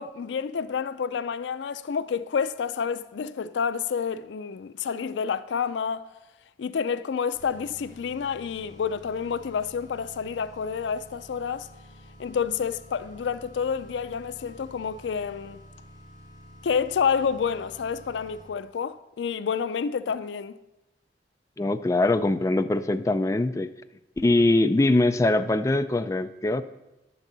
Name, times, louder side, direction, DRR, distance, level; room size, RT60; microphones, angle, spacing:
voice 1, 0.0-6.1 6.6-11.7 12.2-15.6 16.6-20.5, left 6 dB, 90° left, 0.4 m, -29 dB
sound 1, 7.3-18.7, equal, 20° right, 3.7 m, -50 dB
voice 2, 21.6-23.7 24.2-26.6, left 2 dB, 15° left, 0.3 m, -22 dB
10.5 x 4.0 x 7.3 m
head